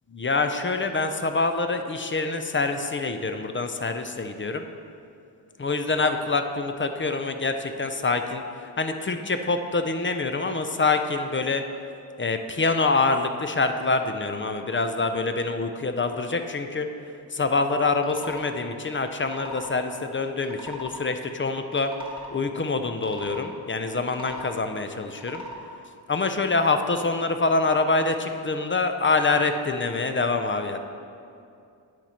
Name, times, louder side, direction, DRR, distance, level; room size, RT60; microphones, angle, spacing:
voice 1, 0.1-4.6 5.6-8.4 8.8-11.6 12.2-16.9 17.3-21.9 22.3-25.4 26.1-30.8, left 3 dB, 25° left, 7 dB, 0.4 m, -25 dB
sound 1, 18.0-18.5 19.1-19.7 20.4-21.0 21.6-22.3 23.0-23.4 24.0-24.5 25.1-25.6, left 1 dB, 10° right, 1.5 m, -40 dB
10.5 x 4.4 x 4.3 m, 2.5 s
cardioid pair, 65°, 47 cm